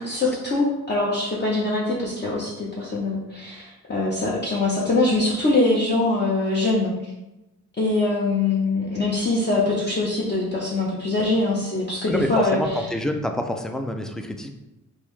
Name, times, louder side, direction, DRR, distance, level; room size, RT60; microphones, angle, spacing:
voice 1, 0.0-7.1 7.8-12.9, left 2 dB, 30° left, -5 dB, 0.7 m, -23 dB
voice 2, 12.1-14.6, left 1 dB, ahead, 5 dB, 0.3 m, -27 dB
3.7 x 2.6 x 3.1 m, 0.96 s
cardioid pair, 70°, 34 cm